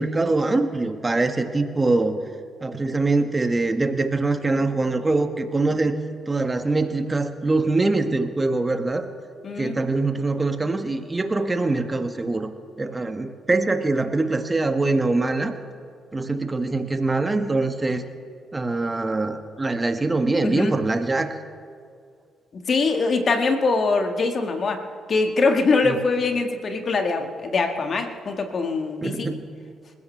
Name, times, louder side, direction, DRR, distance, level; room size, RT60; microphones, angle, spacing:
voice 1, 0.0-2.2 2.6-6.0 6.3-9.0 9.6-12.5 12.8-15.5 16.1-18.0 18.5-21.4 25.8-26.0 29.0-29.5, right 2 dB, 25° right, 7 dB, 1.7 m, -23 dB
voice 2, 9.4-9.8 20.4-20.7 22.5-29.3, left 3 dB, 45° left, 5 dB, 1.9 m, -23 dB
27.5 x 14.5 x 3.4 m, 2.2 s
figure-of-eight pair, 40°, 0 cm